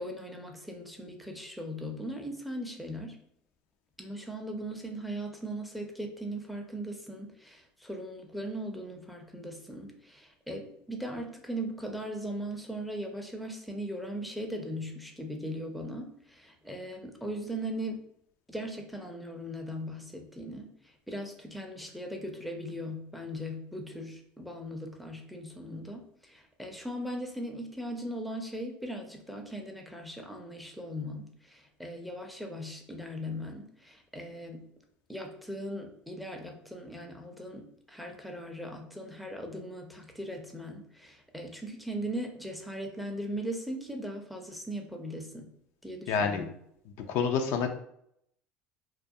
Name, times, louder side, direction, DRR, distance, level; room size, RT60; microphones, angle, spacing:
voice 1, 0.0-3.2 4.0-18.0 18.5-34.7 35.1-45.5 45.8-46.6, equal, ahead, 2 dB, 0.5 m, -39 dB
voice 2, 46.1-46.4 47.1-47.7, left 6 dB, 65° left, 5 dB, 0.4 m, -27 dB
2.3 x 2.3 x 2.6 m, 0.71 s
supercardioid pair, 90°, 5 cm